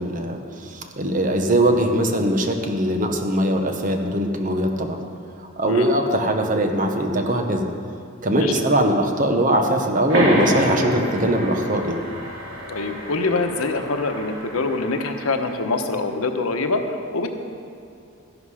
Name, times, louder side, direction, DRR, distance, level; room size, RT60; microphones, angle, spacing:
voice 1, 0.0-5.0 5.6-7.6 8.2-12.0, right 1 dB, 40° right, 4 dB, 1.1 m, -21 dB
sound 1, 10.1-15.3, equal, 60° right, 3.4 m, -27 dB
voice 2, 12.7-16.8 17.1-17.3, left 3 dB, 90° left, 6 dB, 1.0 m, -24 dB
13.0 x 11.0 x 4.9 m, 2.6 s
head